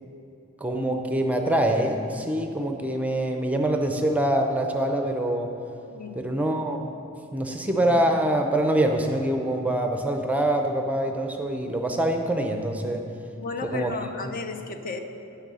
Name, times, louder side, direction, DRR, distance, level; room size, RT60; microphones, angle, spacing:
voice 1, 0.6-5.5 6.1-6.8 7.3-13.0 13.6-13.9 14.2-14.3, right 1 dB, 5° right, 4 dB, 0.6 m, -25 dB
voice 2, 5.9-6.2 13.4-15.0, left 4 dB, 40° left, 6 dB, 0.6 m, -34 dB
9.7 x 6.6 x 6.2 m, 2.8 s
head